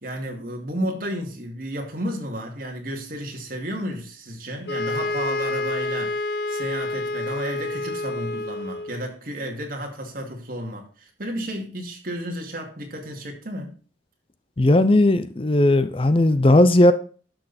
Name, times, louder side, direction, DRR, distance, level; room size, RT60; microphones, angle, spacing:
voice 1, 0.0-6.2 6.5-13.7, equal, 50° right, 2.5 m, -32 dB
sound 1, 4.7-9.1, left 2 dB, 65° left, 0.7 m, -28 dB
voice 2, 14.6-16.9, left 1 dB, 30° left, 0.6 m, -16 dB
11.5 x 6.5 x 4.3 m
head